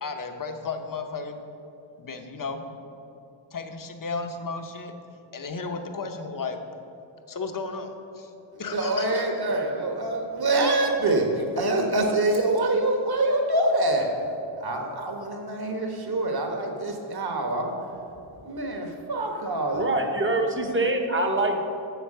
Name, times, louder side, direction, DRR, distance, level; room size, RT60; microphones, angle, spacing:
voice 1, 0.0-1.4 2.0-2.7 3.5-4.9 5.3-6.6 7.3-8.3 8.6-9.4, left 4 dB, 40° left, 6 dB, 0.8 m, -34 dB
voice 2, 8.7-11.3 11.6-14.1 14.6-17.7 18.4-19.9, right 2 dB, 50° right, 2 dB, 1.3 m, -25 dB
voice 3, 19.7-21.6, right 2 dB, 25° right, 2 dB, 0.8 m, -24 dB
8.0 x 6.8 x 6.6 m, 2.7 s
wide cardioid pair, 145°, 49 cm